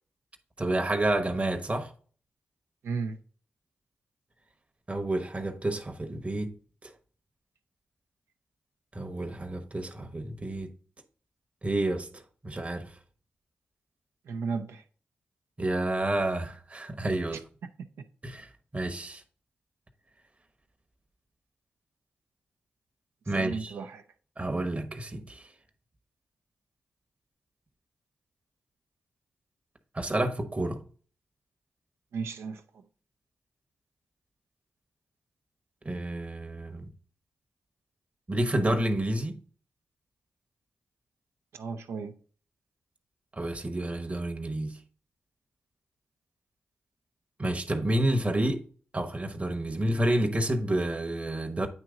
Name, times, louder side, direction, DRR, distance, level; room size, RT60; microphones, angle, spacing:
voice 1, 0.6-1.9 4.9-6.5 6.8-6.9 8.9-10.7 11.6-12.1 12.4-12.9 15.6-17.4 18.2-19.2 23.3-23.7 24.4-25.5 29.9-30.8 35.8-36.9 38.3-39.4 43.3-44.8 47.4-48.6 48.9-51.7, right 1 dB, 30° right, 1.1 m, -29 dB
voice 2, 2.8-3.2 14.3-14.8 17.8-17.9 23.3-24.0 32.1-32.8 41.5-42.2, right 5 dB, 80° right, 0.6 m, -34 dB
9.1 x 3.0 x 3.7 m
supercardioid pair, 45°, 4 cm